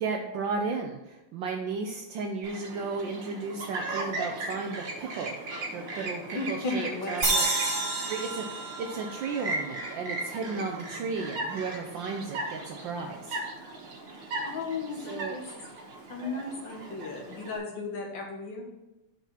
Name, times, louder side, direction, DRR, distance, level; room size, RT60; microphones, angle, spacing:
voice 1, 0.0-7.2 7.7-13.4 15.0-15.4, right 4 dB, 70° right, 3 dB, 1.3 m, -34 dB
Chirp tweet, 2.4-17.6, right 2 dB, 85° right, 2.2 m, -38 dB
voice 2, 6.3-7.5 14.4-15.5 16.1-18.7, left 3 dB, 65° left, 0 dB, 1.7 m, -35 dB
sound 1, 7.2-10.5, right 2 dB, 45° right, 2.7 m, -30 dB
6.0 x 5.7 x 5.8 m, 0.98 s
omnidirectional pair, 2.3 m